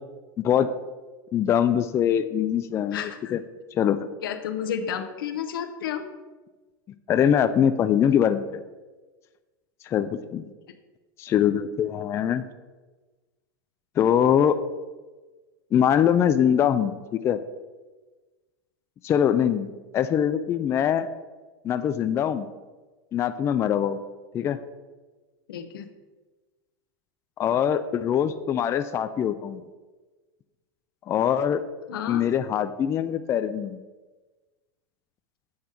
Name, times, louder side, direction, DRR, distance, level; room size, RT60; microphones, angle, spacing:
voice 1, 1.3-3.4 3.7-4.1 7.1-8.6 9.8-10.4 11.2-12.4 14.0-14.6 15.7-17.4 19.0-21.1 21.6-22.5 23.1-24.0 24.3-24.6 27.4-29.6 31.1-31.6 32.1-33.8, left 9 dB, 25° left, 10 dB, 0.3 m, -23 dB
voice 2, 2.9-3.3 4.2-6.1 25.5-25.9 31.9-32.3, left 8 dB, 85° left, 8 dB, 0.8 m, -31 dB
7.9 x 3.6 x 5.6 m, 1.3 s
supercardioid pair, 130°, 11 cm